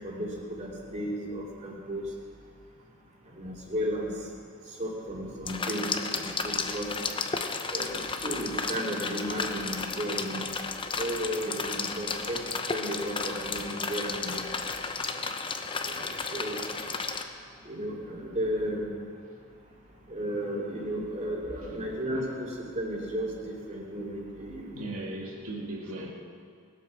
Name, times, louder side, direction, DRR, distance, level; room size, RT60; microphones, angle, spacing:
voice 1, 0.0-2.1 3.3-4.1 4.7-6.9 7.7-10.5 10.9-14.4 15.8-16.6 17.6-18.9 20.1-24.8, equal, 35° right, -3 dB, 2.8 m, -34 dB
sound 1, 5.5-17.2, left 4 dB, 25° left, 0.7 m, -33 dB
voice 2, 24.7-26.1, right 2 dB, 90° right, -1 dB, 2.2 m, -38 dB
20.0 x 7.8 x 6.2 m, 2.3 s
head